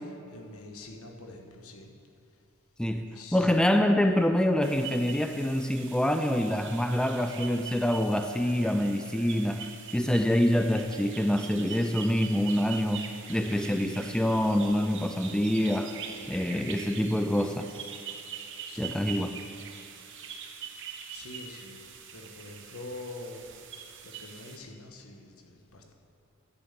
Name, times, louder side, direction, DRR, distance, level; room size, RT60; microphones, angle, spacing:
voice 1, 0.0-1.9 2.9-3.5 18.7-19.0 20.0-20.6 21.1-23.6 24.0-25.9, left 2 dB, 75° left, 2 dB, 1.4 m, -46 dB
voice 2, 2.8-16.0 16.3-17.7 18.8-19.4, left 1 dB, 5° left, 7 dB, 0.3 m, -26 dB
sound 1, 4.6-24.6, right 7 dB, 55° right, 1.0 m, -43 dB
10.5 x 6.8 x 8.1 m, 2.8 s
head